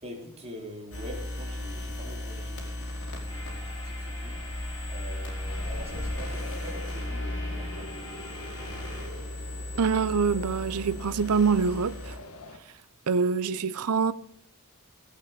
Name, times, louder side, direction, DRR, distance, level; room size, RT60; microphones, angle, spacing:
voice 1, 0.0-4.4 4.9-8.4, equal, 30° right, 3.5 m, -44 dB
sound 1, 0.9-12.2, left 1 dB, 55° left, 4.3 m, -36 dB
sound 2, 3.3-9.1, left 1 dB, 20° left, 4.9 m, -45 dB
sound 3, 5.5-12.6, left 2 dB, 75° left, 1.6 m, -45 dB
voice 2, 9.8-12.1 13.1-14.1, right 5 dB, 80° right, 0.6 m, -25 dB
17.5 x 8.8 x 6.6 m
head